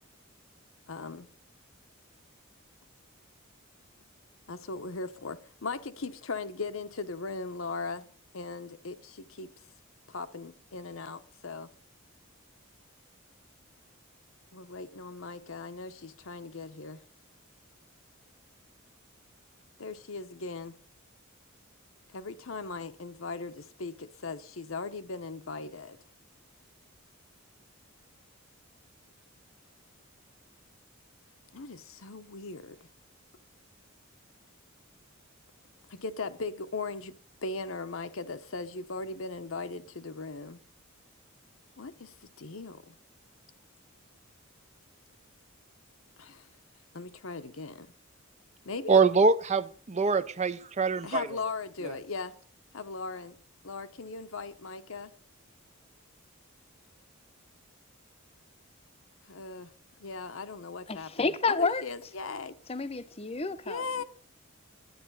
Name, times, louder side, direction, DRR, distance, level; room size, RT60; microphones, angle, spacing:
voice 1, 0.9-1.3 4.5-8.1 8.3-9.5 10.1-11.7 14.5-17.0 19.8-20.8 22.1-26.0 31.5-32.8 35.9-37.1 37.4-40.6 41.8-43.0 46.2-46.5 46.9-47.9 48.6-49.0 51.0-52.3 52.7-53.3 53.6-55.1 59.3-59.7 60.0-62.5 63.7-64.0, left 3 dB, 70° left, 0.9 m, -38 dB
voice 2, 48.9-51.3 51.8-51.9, right 4 dB, 30° right, 0.5 m, -24 dB
voice 3, 60.9-61.8 62.7-63.8, left 4 dB, 30° left, 0.7 m, -30 dB
11.5 x 9.7 x 5.5 m
head